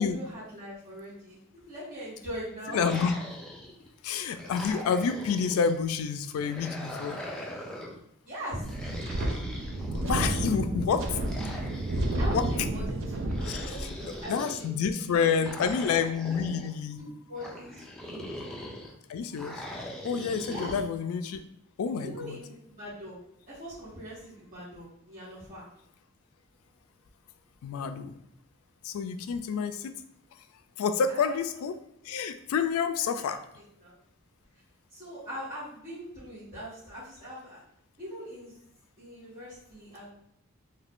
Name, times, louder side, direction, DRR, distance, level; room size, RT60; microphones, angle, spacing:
voice 1, 0.0-1.4 1.7-2.9 7.2-7.3 8.2-9.3 12.2-15.5 16.3-16.5 16.9-18.3 20.5-20.7 22.0-23.2 23.5-25.6 31.1-31.4 33.1-33.9 34.9-37.6 38.0-38.5 39.0-40.1, equal, 40° right, -13 dB, 1.2 m, -41 dB
voice 2, 2.7-3.1 4.0-7.2 9.9-11.2 12.3-12.5 13.5-13.9 14.3-17.0 19.1-19.6 20.0-21.4 21.8-22.4 27.6-28.2 28.8-29.9 30.8-31.8 32.0-33.4, left 6 dB, 85° left, 10 dB, 0.3 m, -28 dB
sound 1, 2.7-3.9 4.3-5.8 6.4-8.0 8.6-10.3 11.2-12.6 13.3-14.7 15.4-16.7 17.4-18.9 19.4-20.8, left 1 dB, 5° left, 0.3 m, -41 dB
Wind, 8.6-14.2, right 1 dB, 65° right, 0.4 m, -31 dB
2.7 x 2.4 x 3.5 m, 0.74 s
head